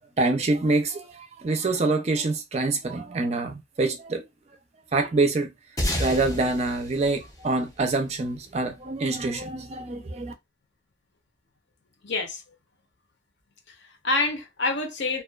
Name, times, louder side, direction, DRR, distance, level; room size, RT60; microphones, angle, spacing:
voice 1, 0.2-4.2 4.9-5.5 6.0-10.3, right 3 dB, 35° right, 0.4 m, -25 dB
sound 1, 5.8-8.6, left 1 dB, 15° left, 0.6 m, -31 dB
voice 2, 12.0-12.4 13.7-15.2, left 2 dB, 60° left, 0.7 m, -27 dB
2.4 x 2.2 x 2.3 m
head